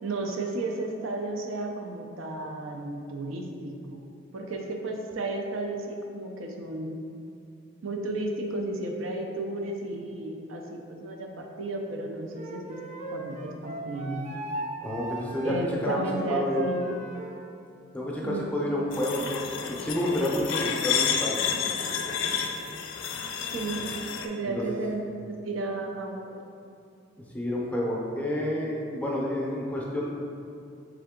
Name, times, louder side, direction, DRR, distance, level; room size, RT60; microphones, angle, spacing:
voice 1, 0.0-4.0 4.3-7.0 7.8-12.8 13.1-14.3 15.4-16.8 18.2-18.4 23.5-23.9 24.2-26.4, right 2 dB, 90° right, 2 dB, 0.5 m, -33 dB
Wind instrument woodwind instrument, 12.3-17.4, right 1 dB, 40° right, 0.5 m, -37 dB
voice 2, 14.8-15.5 15.8-16.0 16.3-16.6 17.9-21.4 23.8-23.9 24.4-24.8 27.3-30.1, left 1 dB, 5° left, -3 dB, 0.5 m, -29 dB
sound 1, 18.9-24.3, left 7 dB, 70° left, 0.4 m, -30 dB
3.7 x 3.5 x 3.6 m, 2.5 s
head